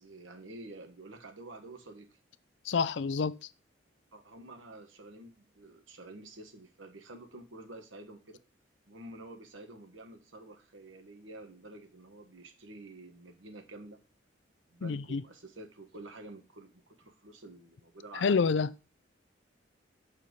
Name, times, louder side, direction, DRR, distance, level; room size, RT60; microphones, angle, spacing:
voice 1, 0.0-2.1 4.1-8.4 8.9-14.0 14.7-18.3, right 2 dB, 90° right, 1.4 m, -49 dB
voice 2, 2.6-3.4 14.8-15.2 18.1-18.7, left 5 dB, 65° left, 0.4 m, -28 dB
6.4 x 4.4 x 5.3 m
head